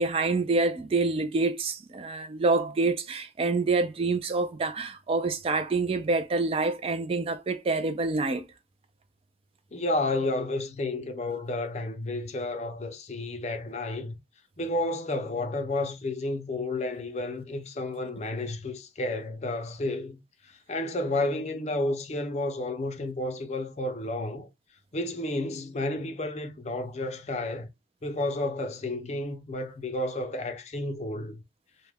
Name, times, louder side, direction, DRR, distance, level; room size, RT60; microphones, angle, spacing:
voice 1, 0.0-8.5, right 3 dB, 35° right, 0.3 m, -27 dB
voice 2, 9.7-14.1 14.6-20.2 20.4-24.5 24.9-27.7 28.0-31.4, left 2 dB, 40° left, 0.5 m, -31 dB
2.3 x 2.1 x 3.3 m
head